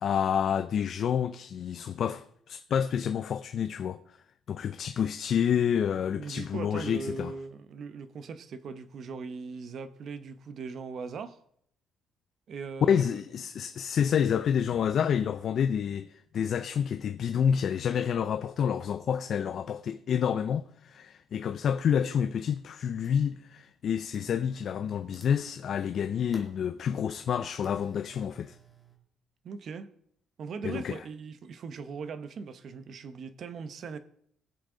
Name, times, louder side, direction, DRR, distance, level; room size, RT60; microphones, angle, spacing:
voice 1, 0.0-4.2 4.5-7.3 12.9-28.6 30.6-31.0, left 8 dB, 50° left, 0.5 m, -29 dB
voice 2, 6.1-11.4 12.5-13.0 29.4-29.9 30.4-34.0, right 5 dB, 50° right, 0.9 m, -39 dB
sound 1, 21.2-21.3 21.9-22.4 22.7-23.4 24.1-29.0, right 3 dB, 15° right, 2.3 m, -57 dB
21.0 x 7.6 x 3.8 m
cardioid pair, 135°, 0 cm